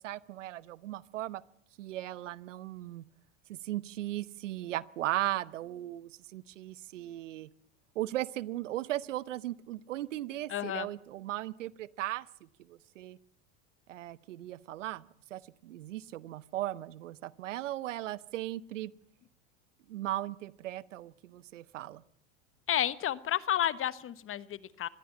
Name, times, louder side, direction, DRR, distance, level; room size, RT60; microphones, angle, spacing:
voice 1, 0.0-1.4 1.8-3.1 3.5-7.5 7.9-12.3 12.7-13.2 13.9-15.0 15.3-18.9 19.9-22.0, right 14 dB, 90° right, 20 dB, 1.0 m, -37 dB
voice 2, 10.5-10.9 22.7-24.9, left 11 dB, 35° left, 17 dB, 1.4 m, -31 dB
21.5 x 16.0 x 8.5 m, 0.71 s
hypercardioid pair, 100°, 36 cm